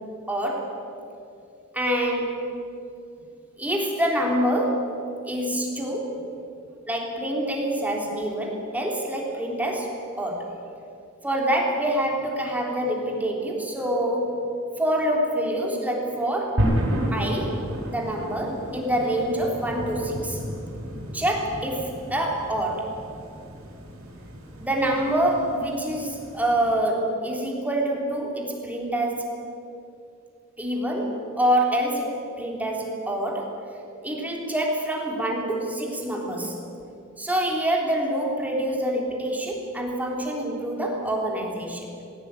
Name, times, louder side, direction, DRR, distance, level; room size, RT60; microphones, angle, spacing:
voice 1, 0.3-0.7 1.7-2.5 3.6-4.9 5.3-6.2 6.9-10.5 11.2-14.3 14.8-16.6 17.1-17.6 17.9-20.4 21.1-23.0 24.6-29.4 30.6-33.5 34.0-36.6 37.2-41.9, right 1 dB, 5° right, -1 dB, 3.5 m, -26 dB
sound 1, 16.6-26.7, equal, 70° right, 4.8 m, -32 dB
20.5 x 16.5 x 9.0 m, 2.5 s
head